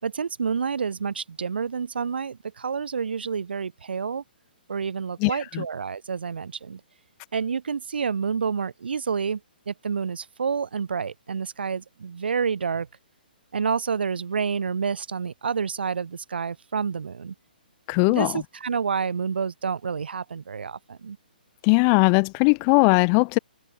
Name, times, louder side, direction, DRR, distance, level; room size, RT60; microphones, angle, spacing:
voice 1, 0.0-4.2 4.7-6.8 7.3-9.4 9.7-12.9 13.5-17.3 18.0-21.2, right 6 dB, 80° right, 5.8 m, -29 dB
voice 2, 5.2-5.6 17.9-18.4 21.6-23.4, left 40 dB or more, 20° left, 1.1 m, -19 dB
hypercardioid pair, 165°, 5 cm